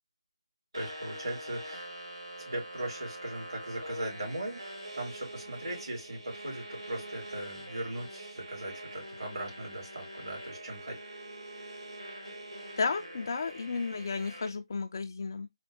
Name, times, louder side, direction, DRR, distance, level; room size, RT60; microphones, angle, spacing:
voice 1, 0.7-1.9 2.4-4.6 4.9-10.9, right 1 dB, 60° right, 3.0 m, -39 dB
sound 1, 0.7-14.5, right 1 dB, 85° right, 1.6 m, -44 dB
voice 2, 12.8-15.5, left 4 dB, 45° left, 0.3 m, -33 dB
4.4 x 2.1 x 3.4 m
figure-of-eight pair, 150°, 3 cm